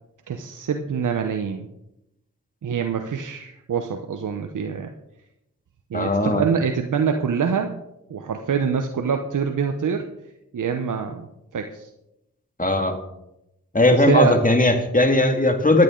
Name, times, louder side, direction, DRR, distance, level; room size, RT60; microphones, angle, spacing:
voice 1, 0.3-1.7 2.6-4.9 5.9-7.8 8.1-10.1 10.5-11.3 11.5-11.9 13.9-14.4, right 6 dB, 75° right, 5 dB, 0.9 m, -25 dB
voice 2, 5.9-6.4 12.6-13.0 13.7-15.8, left 2 dB, 25° left, 5 dB, 2.2 m, -18 dB
15.0 x 10.5 x 3.9 m, 0.87 s
cardioid pair, 45°, 31 cm